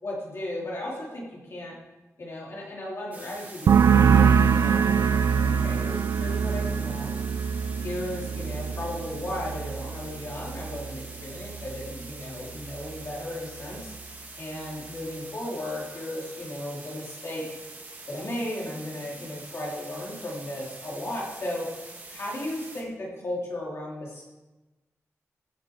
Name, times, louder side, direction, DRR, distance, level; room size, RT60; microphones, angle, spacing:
voice 1, 0.0-1.8 2.2-7.2 7.8-13.9 14.4-17.4 18.1-21.7 22.1-24.3, left 1 dB, 50° left, -4 dB, 3.6 m, -35 dB
sound 1, 3.1-22.8, right 2 dB, 30° right, 1.6 m, -44 dB
sound 2, 3.7-11.1 11.4-11.9, right 7 dB, 80° right, 0.5 m, -24 dB
15.5 x 7.2 x 4.8 m, 1.1 s
wide cardioid pair, 175°, 6 cm